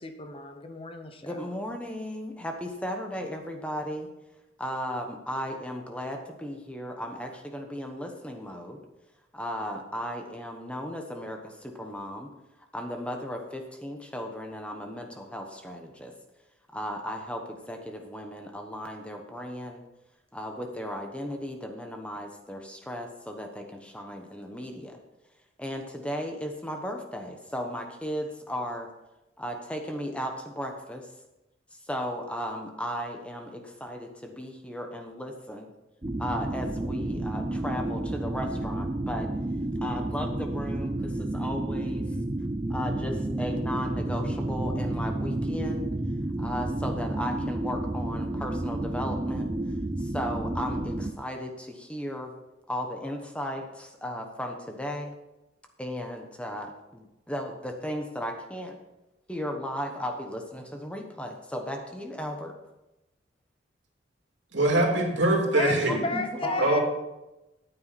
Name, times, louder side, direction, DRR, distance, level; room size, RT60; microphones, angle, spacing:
voice 1, 0.0-1.5 65.5-66.8, left 3 dB, 30° left, 7 dB, 0.9 m, -33 dB
voice 2, 1.2-4.1 4.6-8.8 9.3-12.3 12.7-16.1 16.7-19.8 20.3-25.0 25.6-28.9 29.4-31.1 31.9-35.7 36.2-39.3 39.8-42.1 42.7-45.9 46.4-49.5 50.0-52.3 52.7-55.1 55.8-58.8 59.3-62.5 65.9-66.8, equal, 5° left, 3 dB, 1.1 m, -35 dB
sound 1, 36.0-51.1, right 1 dB, 20° right, 0.6 m, -31 dB
voice 3, 64.5-66.0 66.6-66.8, right 1 dB, 70° right, 1 dB, 2.6 m, -23 dB
14.0 x 9.0 x 4.2 m, 0.97 s
head